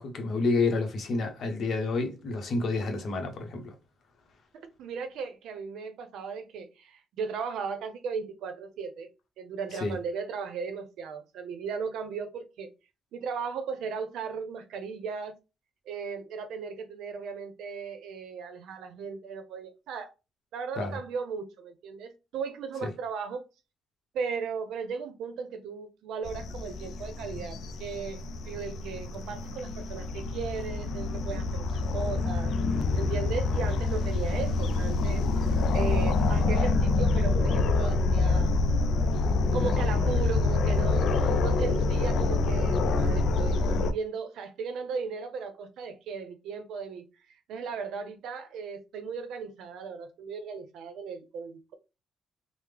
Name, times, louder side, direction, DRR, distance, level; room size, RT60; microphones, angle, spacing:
voice 1, 0.0-3.7 9.7-10.0 20.8-21.0 22.8-22.9, left 3 dB, 50° left, 0.8 m, -29 dB
voice 2, 4.8-9.1 9.4-12.7 13.1-15.4 15.9-20.1 20.5-23.5 24.1-32.5 33.0-35.2 35.7-38.6 39.5-47.1 47.5-51.7, right 5 dB, 80° right, 0.6 m, -36 dB
sound 1, 26.3-43.9, left 3 dB, 70° left, 0.3 m, -26 dB
3.4 x 2.0 x 3.3 m
cardioid pair, 140°, 0 cm